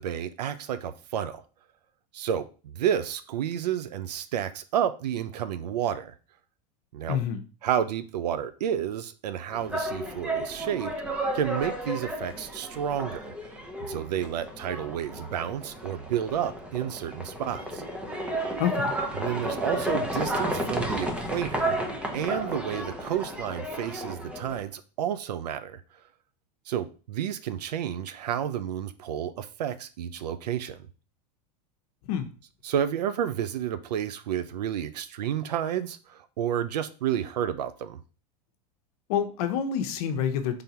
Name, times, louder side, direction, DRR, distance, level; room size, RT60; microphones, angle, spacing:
voice 1, 0.0-1.4 2.1-6.1 6.9-7.2 7.6-10.9 11.3-13.3 13.8-17.8 19.2-21.8 22.1-25.8 26.7-30.8 32.6-38.0, right 9 dB, 90° right, 0.5 m, -30 dB
voice 2, 7.1-7.4 18.6-18.9 32.1-32.3 39.1-40.6, left 8 dB, 65° left, 0.7 m, -27 dB
sound 1, 9.5-24.6, right 1 dB, 5° right, 0.7 m, -32 dB
3.7 x 3.4 x 2.8 m
hypercardioid pair, 110°, 21 cm